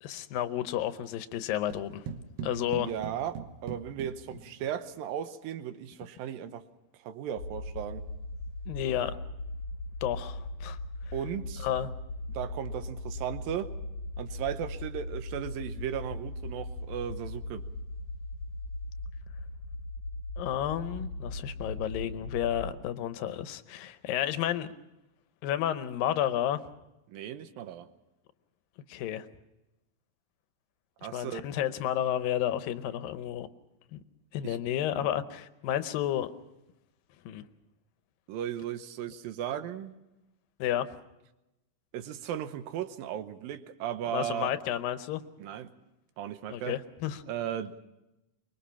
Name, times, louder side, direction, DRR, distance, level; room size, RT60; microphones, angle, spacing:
voice 1, 0.0-2.0 2.4-2.9 8.7-9.1 10.0-10.8 11.6-11.9 20.4-24.7 25.4-26.6 28.9-29.3 31.1-33.5 33.9-34.0 34.3-36.3 37.3-37.4 40.6-40.9 44.1-45.2 46.5-47.2, left 11 dB, 80° left, 12 dB, 2.6 m, -31 dB
sound 1, 1.7-4.9, right 7 dB, 60° right, 1.8 m, -41 dB
voice 2, 2.5-6.7 7.0-8.1 11.1-11.7 12.3-13.7 14.2-17.7 27.1-27.9 31.0-31.4 34.4-34.6 35.0-35.1 38.3-39.9 41.9-44.5 45.4-45.7 46.2-46.8 47.3-47.8, right 10 dB, 80° right, 10 dB, 2.7 m, -36 dB
sound 2, 7.4-22.7, left 1 dB, 55° left, 1.8 m, -39 dB
24.0 x 21.5 x 5.7 m, 0.95 s
omnidirectional pair, 4.0 m